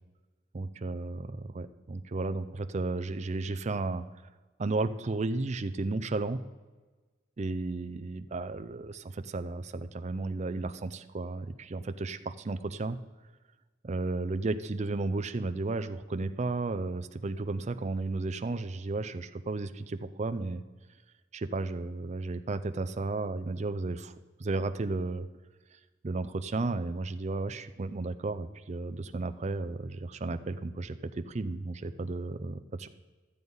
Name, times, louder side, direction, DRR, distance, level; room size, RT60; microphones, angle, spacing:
voice 1, 0.5-4.0 4.6-6.4 7.4-13.0 13.8-20.6 21.3-24.1 24.4-25.3 26.0-32.9, right 3 dB, 35° right, 9 dB, 0.5 m, -33 dB
12.5 x 8.0 x 5.4 m, 1.3 s
head